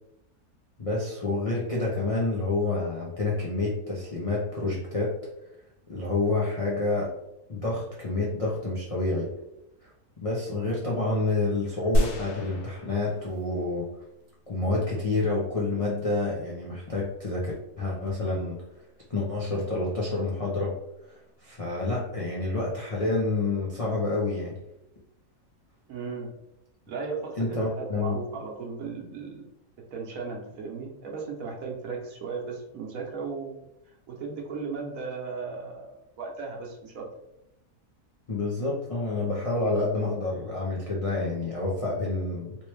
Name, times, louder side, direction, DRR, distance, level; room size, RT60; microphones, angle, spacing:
voice 1, 0.8-5.1 5.9-7.1 7.5-9.3 9.8-9.9 10.2-13.9 14.5-18.6 19.1-20.7 21.1-24.6 27.4-28.2 38.3-42.6, left 2 dB, 50° left, -5 dB, 0.4 m, -28 dB
sound 1, 11.9-13.7 14.2-14.3, equal, 85° left, 1.2 m, -28 dB
voice 2, 25.9-26.3 26.9-29.4 29.9-33.6 34.1-37.0, right 4 dB, 65° right, 0 dB, 1.1 m, -36 dB
3.1 x 3.0 x 3.1 m, 0.85 s
omnidirectional pair, 1.6 m